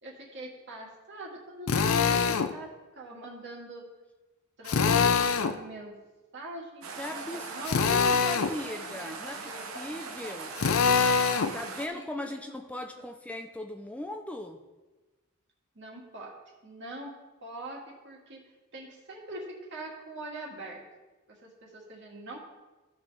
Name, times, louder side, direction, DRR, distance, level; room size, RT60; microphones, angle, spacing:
voice 1, 0.0-3.8 4.6-5.9 6.3-7.8 8.5-9.6 11.6-11.7 11.9-12.6 13.0-13.1 15.8-16.3 16.6-18.4 18.7-20.8 21.3-22.4, right 2 dB, 60° right, -2 dB, 2.0 m, -44 dB
Drill, 1.7-2.5 4.7-5.6 7.6-8.5 10.6-11.5, left 5 dB, 75° left, 0.5 m, -24 dB
sound 1, 6.8-11.9, right 4 dB, 90° right, 1.0 m, -40 dB
voice 2, 7.0-10.5 11.5-14.6, left 1 dB, 5° left, 4 dB, 0.4 m, -38 dB
14.5 x 5.5 x 3.4 m, 1.2 s
head